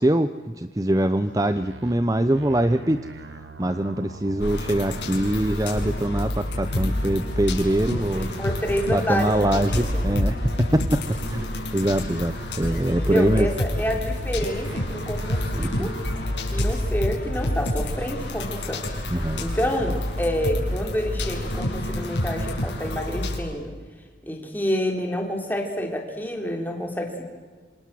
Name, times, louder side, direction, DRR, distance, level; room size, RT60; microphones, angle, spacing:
voice 1, 0.0-3.0 3.6-8.3 8.9-11.0 11.3-13.5 15.6-15.9 19.1-19.4, right 1 dB, 20° right, 11 dB, 0.7 m, -23 dB
sound 1, 1.2-5.5 5.8-11.5 11.8-16.4, right 3 dB, 85° right, 1.7 m, -42 dB
sound 2, 4.4-23.4, left 1 dB, 90° left, 6.5 m, -28 dB
voice 2, 7.8-10.0 12.8-15.9 16.5-18.8 19.4-23.7 24.2-27.2, equal, 10° left, 2 dB, 3.7 m, -28 dB
27.0 x 26.5 x 7.7 m, 1.5 s
head